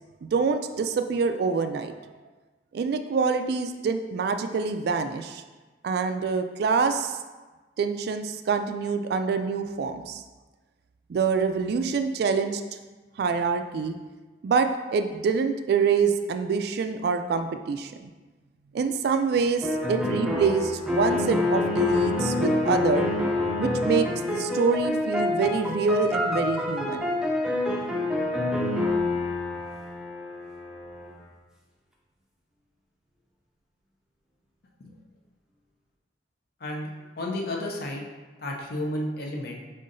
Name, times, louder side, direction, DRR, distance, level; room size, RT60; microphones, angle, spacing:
voice 1, 0.2-2.1 2.7-5.4 5.8-7.2 7.8-10.2 11.1-12.6 13.2-14.0 14.4-18.1 18.7-23.1 23.6-27.1, right 5 dB, 60° right, 8 dB, 0.3 m, -26 dB
sound 1, 19.6-31.1, left 2 dB, 5° right, 0.5 m, -27 dB
voice 2, 37.2-38.0 38.4-39.6, left 1 dB, 55° left, 0 dB, 0.7 m, -32 dB
5.5 x 3.7 x 2.6 m, 1.3 s
head